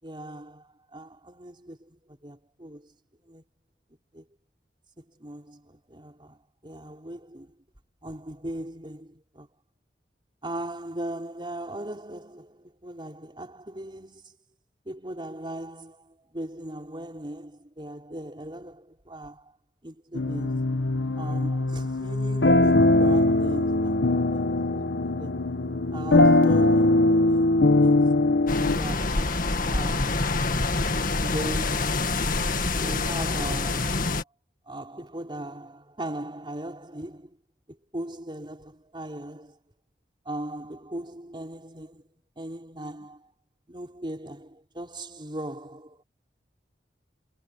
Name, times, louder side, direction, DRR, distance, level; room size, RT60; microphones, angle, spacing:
voice 1, 0.0-2.9 3.3-3.4 4.1-4.3 5.0-7.5 8.0-9.5 10.4-14.3 14.9-19.5 19.8-20.8 21.2-25.5 25.9-28.1 28.6-30.2 31.1-32.1 32.7-34.1 34.7-37.4 37.7-39.6 40.2-42.0 42.4-43.3 43.7-46.0, right 1 dB, 30° right, 4.3 m, -39 dB
sound 1, 20.1-28.8, left 2 dB, 90° left, 1.4 m, -21 dB
sound 2, 28.5-34.2, left 3 dB, 55° left, 1.9 m, -26 dB
head